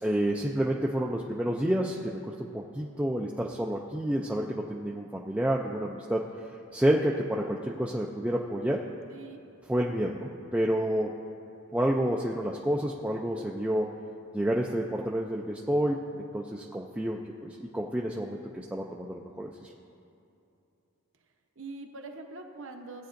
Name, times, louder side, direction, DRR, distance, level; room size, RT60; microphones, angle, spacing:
voice 1, 0.0-6.2 6.7-8.8 9.7-11.1 11.7-14.0 14.3-19.7, right 1 dB, 5° right, -2 dB, 0.3 m, -29 dB
voice 2, 21.6-23.1, right 3 dB, 60° right, 4 dB, 0.9 m, -43 dB
17.0 x 9.1 x 2.6 m, 2.6 s
head